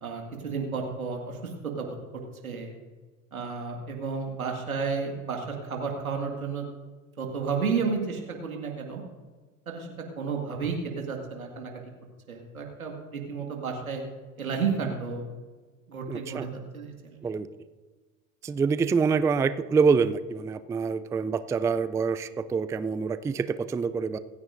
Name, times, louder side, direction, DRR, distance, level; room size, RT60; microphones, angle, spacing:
voice 1, 0.0-1.5 1.8-1.9 2.4-2.7 3.3-6.7 7.2-9.0 9.7-9.9 10.2-11.7 12.3-14.0 14.4-15.2 15.9-17.3, right 5 dB, 90° right, 1 dB, 2.0 m, -32 dB
voice 2, 16.1-16.5 17.2-17.5 18.4-24.2, right 5 dB, 10° right, 14 dB, 0.3 m, -26 dB
25.5 x 9.4 x 2.6 m, 1.4 s
figure-of-eight pair, 70°, 41 cm